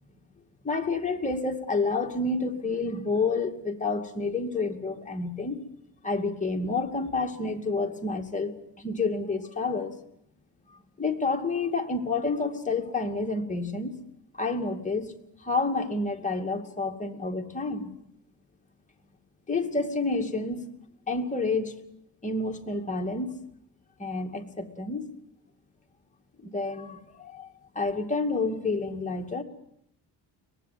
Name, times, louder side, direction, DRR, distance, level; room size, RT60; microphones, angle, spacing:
voice 1, 0.6-5.6 6.0-10.0 11.0-14.0 14.3-15.1 15.4-17.9 19.5-20.7 21.1-21.8 22.2-23.3 24.0-25.1 26.4-29.4, left 3 dB, 20° left, 2 dB, 2.5 m, -29 dB
24.0 x 20.0 x 9.3 m, 0.77 s
cardioid pair, 130°, 39 cm